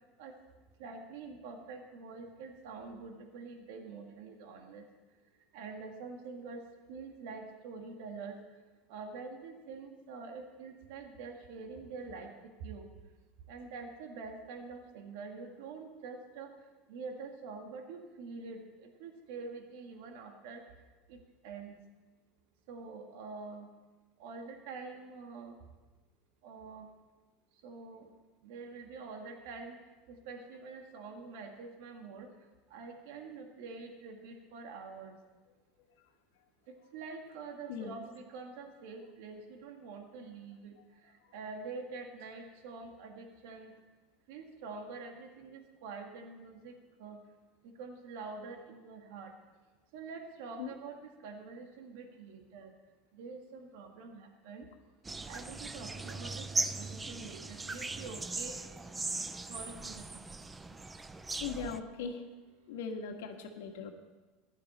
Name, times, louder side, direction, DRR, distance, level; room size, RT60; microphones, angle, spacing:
voice 1, 0.8-4.9 5.5-6.6 6.9-8.4 8.9-12.9 13.5-16.5 16.9-20.6 21.1-21.2 21.4-21.8 22.7-23.7 24.2-25.5 26.4-26.9 27.6-28.1 28.4-29.8 30.1-32.3 32.7-35.2 36.9-40.8 41.0-43.7 44.3-46.7 47.0-47.2 47.6-49.3 49.9-52.7 53.1-54.7 55.3-59.1 59.5-60.2, right 4 dB, 70° right, 4 dB, 1.7 m, -46 dB
sound 1, 55.0-61.8, right 3 dB, 10° right, 0.4 m, -39 dB
voice 2, 61.4-62.2 62.7-63.9, left 6 dB, 85° left, 4 dB, 1.5 m, -39 dB
15.0 x 11.0 x 4.2 m, 1.2 s
supercardioid pair, 140°, 0 cm